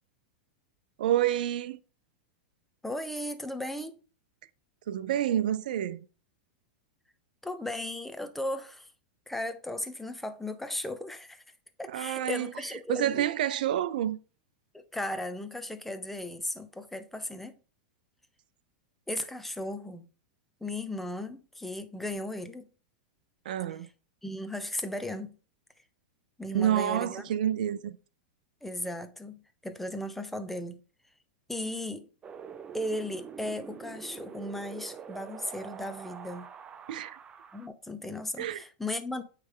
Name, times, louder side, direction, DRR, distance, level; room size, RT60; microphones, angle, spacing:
voice 1, 1.0-1.8 4.9-6.0 11.9-12.5 12.9-14.2 23.5-23.9 26.5-28.0 36.9-37.2 38.4-38.6, right 11 dB, 75° right, 0.6 m, -28 dB
voice 2, 2.8-4.0 7.4-8.9 9.3-11.4 11.8-13.3 14.7-17.6 19.1-20.0 20.6-22.7 24.2-25.4 26.4-27.3 28.6-30.8 31.5-32.1 32.7-36.5 37.5-39.2, left 1 dB, 5° left, 0.8 m, -36 dB
Wind, 32.2-37.7, right 7 dB, 20° right, 0.5 m, -45 dB
8.8 x 3.3 x 3.8 m
hypercardioid pair, 125°, 5 cm